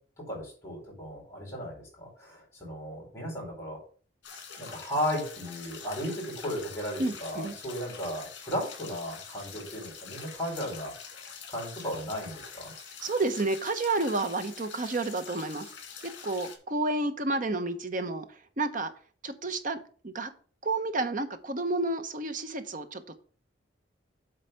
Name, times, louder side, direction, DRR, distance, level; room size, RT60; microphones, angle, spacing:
voice 1, 0.3-3.8 4.3-12.7, equal, 15° left, -3 dB, 4.4 m, -35 dB
sound 1, 4.2-16.6, left 6 dB, 70° left, 2.1 m, -45 dB
voice 2, 7.0-7.5 13.0-15.7 16.0-18.3 18.6-18.9 19.2-19.8 20.0-20.3 20.6-23.2, right 2 dB, 45° right, 9 dB, 0.9 m, -30 dB
7.8 x 4.1 x 6.7 m, 0.42 s
head